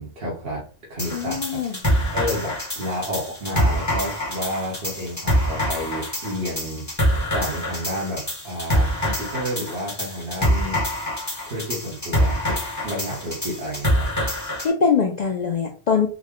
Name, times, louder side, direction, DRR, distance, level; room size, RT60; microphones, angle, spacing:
voice 1, 0.0-1.8 2.1-6.9 7.3-10.9 11.4-14.3, equal, 50° right, -4 dB, 1.2 m, -31 dB
sound 1, 1.0-14.7, equal, 15° left, 1.0 m, -25 dB
voice 2, 1.1-1.8 14.6-16.1, left 6 dB, 75° left, 2 dB, 0.4 m, -22 dB
3.7 x 2.1 x 3.6 m, 0.37 s
omnidirectional pair, 1.3 m